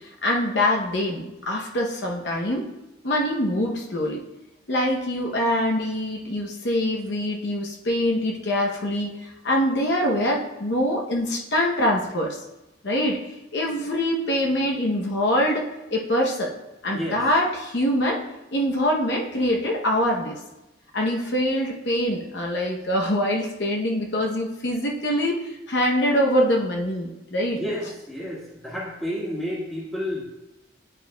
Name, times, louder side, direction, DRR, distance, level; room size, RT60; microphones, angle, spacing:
voice 1, 0.2-2.7 3.0-4.3 4.7-12.4 12.8-13.2 13.5-16.5 16.8-18.2 18.5-20.4 20.9-27.6, equal, 70° left, 0 dB, 0.8 m, -24 dB
voice 2, 27.5-30.2, equal, ahead, -6 dB, 1.5 m, -31 dB
9.9 x 4.5 x 2.2 m, 0.97 s
head